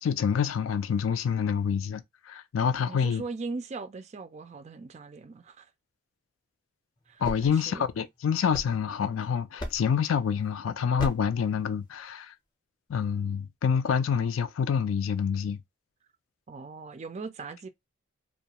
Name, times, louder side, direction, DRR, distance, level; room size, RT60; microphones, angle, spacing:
voice 1, 0.0-3.2 7.2-12.3 12.9-15.6, left 7 dB, 85° left, 0.4 m, -27 dB
voice 2, 2.8-5.7 7.1-7.9 16.5-17.7, right 4 dB, 35° right, 0.3 m, -39 dB
sound 1, 7.0-9.2 9.6-10.1 11.0-11.4, left 1 dB, 20° left, 0.6 m, -39 dB
2.3 x 2.2 x 2.8 m
head